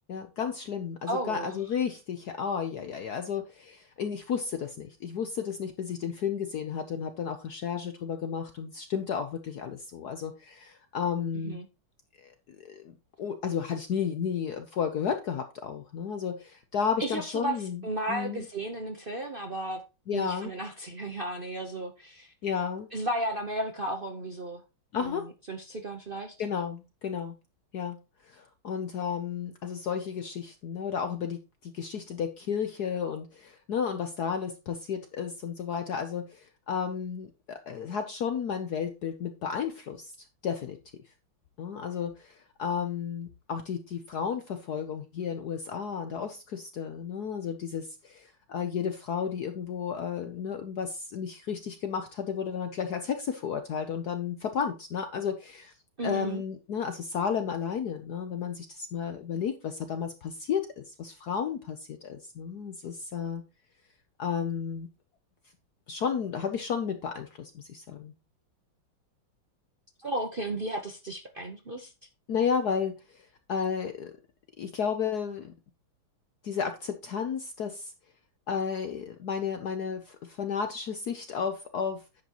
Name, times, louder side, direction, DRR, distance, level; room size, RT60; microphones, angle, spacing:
voice 1, 0.1-11.6 12.2-12.3 12.6-17.8 18.1-18.4 20.1-20.5 22.4-22.9 24.9-25.2 26.4-27.3 27.7-28.0 28.3-40.1 40.4-40.8 41.6-55.7 56.0-63.4 64.2-64.9 65.9-68.1 72.3-74.1 74.6-75.5 76.4-77.9 78.5-82.0, left 7 dB, 60° left, 7 dB, 1.1 m, -33 dB
voice 2, 1.1-1.6 11.3-11.7 17.0-17.6 17.8-19.8 20.1-22.3 22.9-24.6 25.0-26.3 56.0-56.4 70.0-71.9, right 1 dB, 45° right, 4 dB, 0.7 m, -34 dB
10.0 x 7.8 x 3.0 m, 0.28 s
omnidirectional pair, 2.3 m